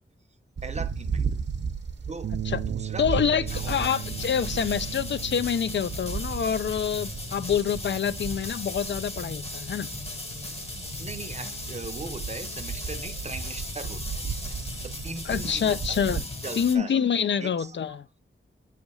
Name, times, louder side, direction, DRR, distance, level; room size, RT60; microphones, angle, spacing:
voice 1, 0.6-1.4 2.0-4.0 11.0-16.0 16.4-16.9 17.4-18.0, right 3 dB, 35° right, 0.7 m, -40 dB
sound 1, 0.6-16.2, right 6 dB, 60° right, 1.0 m, -36 dB
sound 2, 2.2-10.7, right 10 dB, 75° right, 0.4 m, -40 dB
voice 2, 3.0-9.9 15.3-16.2 16.6-18.1, left 7 dB, 60° left, 0.5 m, -26 dB
sound 3, 3.5-16.8, left 2 dB, 30° left, 1.0 m, -37 dB
8.0 x 3.4 x 5.4 m
wide cardioid pair, 125°, 21 cm